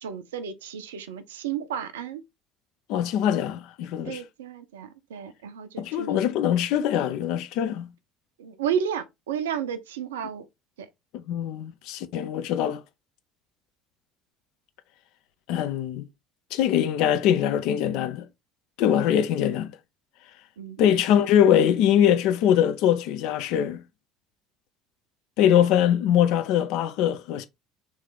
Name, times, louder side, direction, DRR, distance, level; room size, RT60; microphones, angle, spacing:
voice 1, 0.0-2.2 4.0-6.2 8.4-10.5 10.8-10.9 20.6-20.8, right 8 dB, 75° right, 0.5 m, -32 dB
voice 2, 2.9-4.2 5.8-7.9 11.1-12.8 15.5-16.1 16.5-18.2 18.8-19.7 20.8-23.8 25.4-27.5, left 10 dB, 60° left, 0.6 m, -22 dB
3.6 x 3.2 x 3.9 m
figure-of-eight pair, 60°, 0 cm